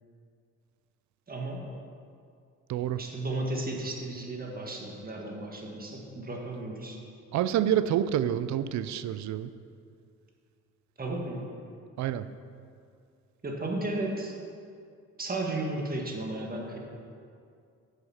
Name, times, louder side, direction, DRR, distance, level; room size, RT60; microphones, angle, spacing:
voice 1, 1.3-1.7 3.0-7.0 11.0-11.5 13.4-14.4 15.2-16.8, right 2 dB, 30° right, 0 dB, 1.6 m, -34 dB
voice 2, 7.3-9.5 12.0-12.2, right 10 dB, 70° right, 13 dB, 0.5 m, -27 dB
8.0 x 6.5 x 5.7 m, 2.4 s
cardioid pair, 90°, 30 cm